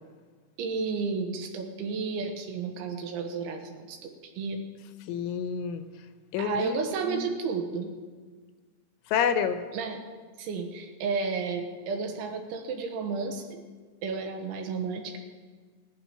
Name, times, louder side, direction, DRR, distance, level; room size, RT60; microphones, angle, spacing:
voice 1, 0.6-4.7 6.4-8.0 9.7-10.0 10.4-13.6 14.0-15.2, right 4 dB, 75° right, 4 dB, 3.3 m, -32 dB
voice 2, 5.1-5.8 6.3-6.8 7.1-7.3 9.1-9.6, left 7 dB, 80° left, 9 dB, 3.1 m, -28 dB
17.5 x 11.5 x 5.6 m, 1.5 s
omnidirectional pair, 5.9 m